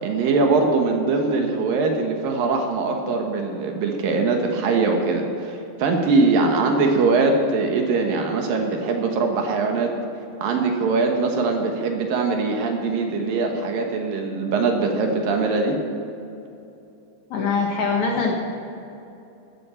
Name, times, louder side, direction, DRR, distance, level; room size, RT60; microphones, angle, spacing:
voice 1, 0.0-9.9 10.4-15.8, right 3 dB, 70° right, 2 dB, 3.0 m, -22 dB
voice 2, 17.3-18.3, left 4 dB, 60° left, 1 dB, 2.2 m, -22 dB
15.0 x 14.0 x 4.4 m, 2.8 s
omnidirectional pair, 4.4 m